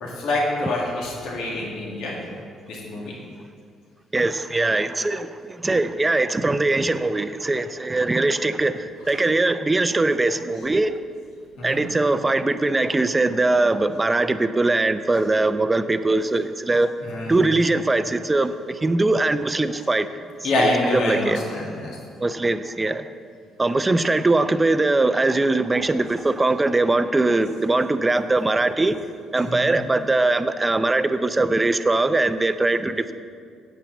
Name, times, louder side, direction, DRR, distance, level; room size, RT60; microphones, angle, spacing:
voice 1, 0.0-2.1 2.7-3.2 9.0-9.1 11.6-11.8 17.0-17.4 20.4-22.0 29.3-29.7, left 1 dB, 80° left, -3 dB, 1.9 m, -26 dB
voice 2, 4.1-10.9 11.6-16.9 17.3-20.1 20.6-20.7 20.9-21.4 22.2-23.0 23.6-29.0 29.3-33.1, right 2 dB, 20° right, 11 dB, 0.5 m, -21 dB
8.4 x 5.8 x 7.2 m, 2.2 s
supercardioid pair, 70°, 0 cm